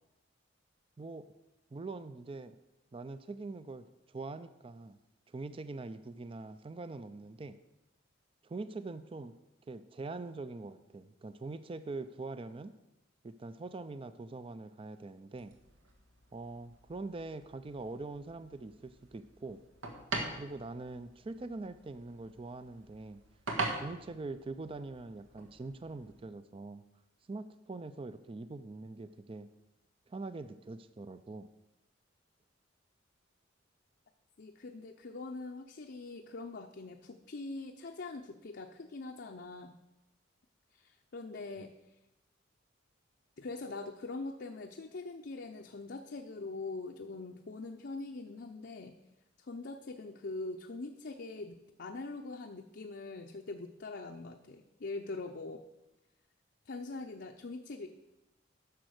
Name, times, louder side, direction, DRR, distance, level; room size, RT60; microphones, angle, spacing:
voice 1, 1.7-2.6 2.9-5.0 5.3-7.6 8.4-9.3 9.7-12.7 13.2-15.6 16.3-19.6 20.4-23.2 23.7-26.8 27.3-29.5 30.1-31.5, right 3 dB, 30° right, 12 dB, 0.4 m, -43 dB
sound 1, 15.3-26.2, right 2 dB, 90° right, 1.7 m, -44 dB
voice 2, 34.4-39.8 40.7-41.7 43.4-49.0 49.4-55.6 56.7-57.9, left 3 dB, 55° left, 3 dB, 0.6 m, -43 dB
10.5 x 6.2 x 6.5 m, 0.96 s
head